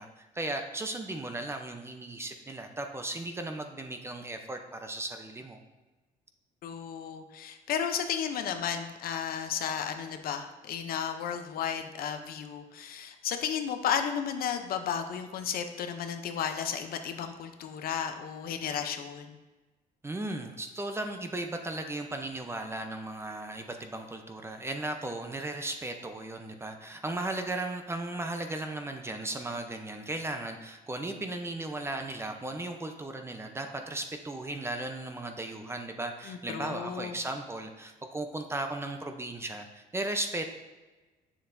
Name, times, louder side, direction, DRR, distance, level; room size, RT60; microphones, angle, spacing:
voice 1, 0.0-5.6 20.0-40.5, right 2 dB, 15° right, 5 dB, 0.6 m, -36 dB
voice 2, 6.6-19.3 36.3-37.2, left 8 dB, 60° left, 7 dB, 0.6 m, -33 dB
7.5 x 6.9 x 2.6 m, 1.2 s
cardioid pair, 110°, 17 cm